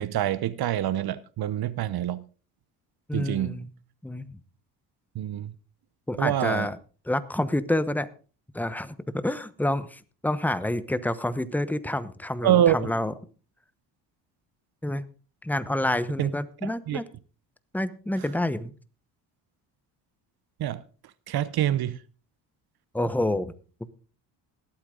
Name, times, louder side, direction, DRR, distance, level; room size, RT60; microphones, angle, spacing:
voice 1, 0.0-2.2 3.1-3.5 5.1-5.5 6.2-6.7 12.4-12.9 16.2-16.3 16.6-17.0 20.6-20.8 21.3-22.0, right 11 dB, 55° right, 0.8 m, -25 dB
voice 2, 3.1-3.7 4.0-4.3 6.1-6.8 7.1-8.1 8.5-13.1 14.8-15.0 15.4-17.1 17.7-18.7 22.9-23.5 23.8-23.9, left 1 dB, 5° left, 1.0 m, -28 dB
20.0 x 8.8 x 3.8 m
supercardioid pair, 80°, 44 cm